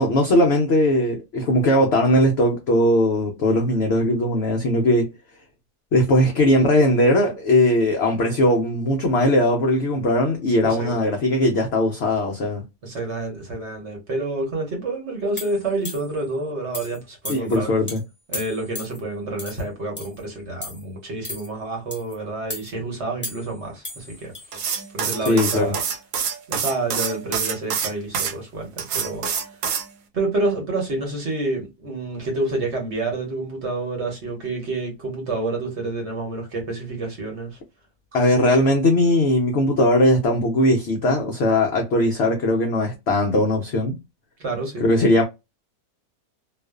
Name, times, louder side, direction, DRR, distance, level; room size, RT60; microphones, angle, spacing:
voice 1, 0.0-5.1 5.9-12.6 17.3-18.0 25.3-25.7 38.1-44.0 44.8-45.2, left 1 dB, 80° left, 0.5 m, -19 dB
voice 2, 10.6-11.1 12.8-17.7 18.3-25.8 26.5-29.4 30.1-37.6 44.4-44.9, right 2 dB, 50° right, 1.1 m, -28 dB
sound 1, 15.4-16.2 16.7-17.0 17.2-17.6 17.9-18.0 18.3-19.0 19.4-19.6 20.0-20.2 20.6-20.8 21.2-21.5 21.9-22.1 22.5-22.7 23.2-23.6 23.8-24.9 25.2-25.4, left 1 dB, 15° left, 0.5 m, -35 dB
sound 2, 24.5-28.3 28.8-29.9, right 7 dB, 85° right, 1.2 m, -26 dB
2.4 x 2.4 x 2.3 m
omnidirectional pair, 1.7 m